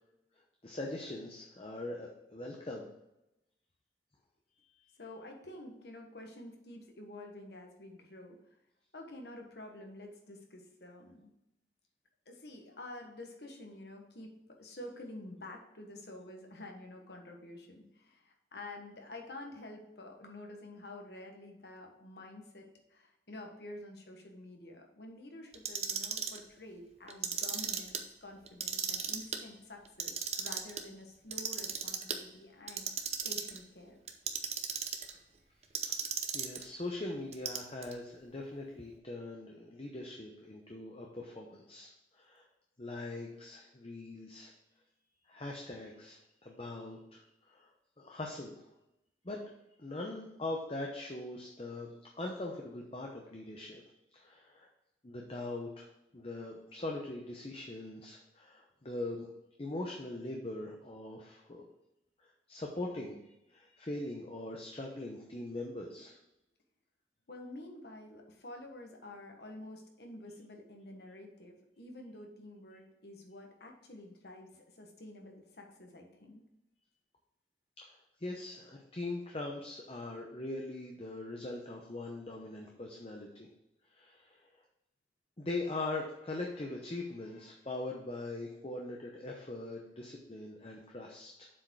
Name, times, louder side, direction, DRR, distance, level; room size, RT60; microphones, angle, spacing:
voice 1, 0.6-2.9 35.8-35.9 36.3-42.5 42.8-44.5 45.3-47.7 48.0-48.6 49.2-49.4 49.8-53.8 54.1-54.7 55.0-55.9 56.1-59.3 59.6-61.6 62.2-66.2 77.8-83.5 83.9-84.5 85.4-91.5, left 2 dB, 30° left, 0 dB, 0.8 m, -41 dB
voice 2, 5.0-8.6 8.9-11.3 12.2-14.3 14.6-32.9 33.2-34.0 67.3-76.4, left 1 dB, 65° left, 2 dB, 1.4 m, -49 dB
Clock, 25.5-26.4 27.1-28.0 28.5-29.4 29.8-30.8 31.3-32.2 32.7-33.6 34.1-35.1 35.7-36.6 37.3-37.9, right 7 dB, 35° right, 0.7 m, -35 dB
7.4 x 4.7 x 4.7 m, 0.89 s
head